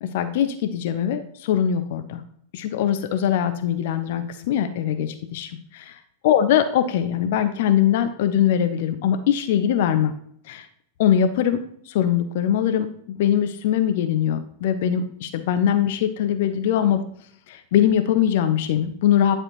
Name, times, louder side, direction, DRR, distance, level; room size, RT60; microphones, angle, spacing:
voice 1, 0.0-2.2 2.5-10.1 10.5-10.7 11.0-17.0 17.5-19.3, left 10 dB, 55° left, 9 dB, 0.5 m, -22 dB
10.0 x 4.3 x 3.0 m, 0.65 s
figure-of-eight pair, 90°, 0 cm